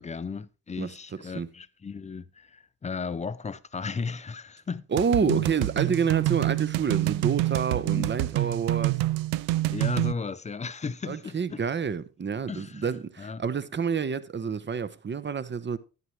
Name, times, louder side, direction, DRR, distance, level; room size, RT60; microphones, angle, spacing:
voice 1, 0.0-4.9 5.2-5.4 7.7-8.1 9.7-11.6 12.5-13.4, left 5 dB, 15° left, 0.5 m, -35 dB
voice 2, 4.9-9.0 11.1-15.8, right 6 dB, 20° right, 0.8 m, -28 dB
sound 1, 5.0-10.1, right 17 dB, 65° right, 0.6 m, -27 dB
10.5 x 9.6 x 3.1 m
hypercardioid pair, 50°, 50 cm